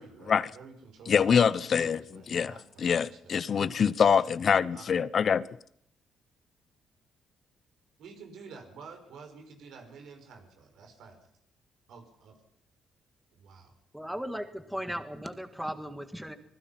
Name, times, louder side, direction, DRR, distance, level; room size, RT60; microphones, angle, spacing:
voice 1, 0.0-3.3 4.1-4.2 4.7-5.0 8.0-11.2 11.9-12.4 13.3-13.7, right 5 dB, 75° right, 5.8 m, -50 dB
voice 2, 1.1-2.0 2.3-5.5, left 7 dB, 45° left, 0.8 m, -25 dB
voice 3, 13.9-16.4, equal, 5° right, 1.9 m, -36 dB
26.0 x 20.5 x 5.9 m
cardioid pair, 115°, 0 cm